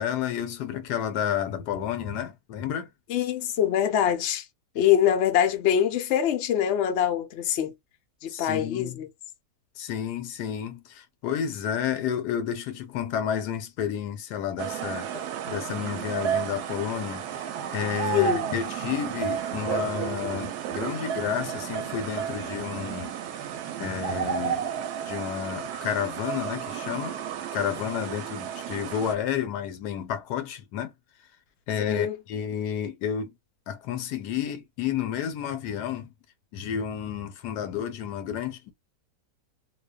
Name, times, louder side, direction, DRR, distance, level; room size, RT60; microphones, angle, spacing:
voice 1, 0.0-2.9 8.3-9.0 9.8-15.1 15.5-23.1 23.8-24.6 25.0-27.2 27.5-30.9 31.7-33.3 33.7-36.1 36.5-38.7, left 9 dB, 75° left, 1.2 m, -31 dB
voice 2, 3.1-4.5 4.7-7.7 8.2-9.1 18.1-18.5 31.8-32.1, left 10 dB, 60° left, 0.7 m, -24 dB
sound 1, 14.6-29.1, right 9 dB, 75° right, 1.1 m, -32 dB
2.6 x 2.2 x 2.2 m
omnidirectional pair, 1.8 m